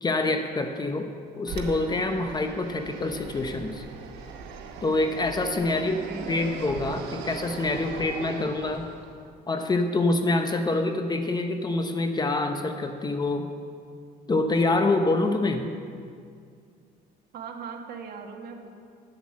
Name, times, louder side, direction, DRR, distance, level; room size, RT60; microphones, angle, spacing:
voice 1, 0.0-1.1 1.4-3.8 4.8-6.0 6.3-8.8 9.5-13.5 14.3-15.7, left 2 dB, 25° left, 6 dB, 0.8 m, -26 dB
Fixed-wing aircraft airplane, 1.5-9.3, right 5 dB, 90° right, 1.0 m, -39 dB
voice 2, 5.7-6.3 17.3-18.7, right 5 dB, 65° right, 3 dB, 1.3 m, -39 dB
9.5 x 7.3 x 7.3 m, 2.2 s
cardioid pair, 110°, 17 cm